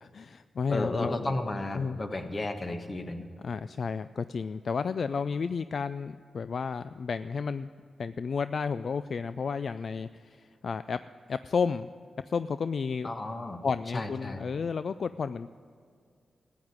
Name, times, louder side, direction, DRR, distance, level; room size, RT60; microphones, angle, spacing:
voice 1, 0.0-1.3 1.7-2.0 3.4-7.7 8.0-11.0 11.3-11.9 12.3-13.1 13.6-15.5, left 5 dB, 65° left, 13 dB, 0.3 m, -32 dB
voice 2, 0.7-3.3 13.0-13.6 13.9-14.4, left 2 dB, 40° left, 6 dB, 1.3 m, -33 dB
14.0 x 9.0 x 9.6 m, 2.2 s
cardioid pair, 70°, 0 cm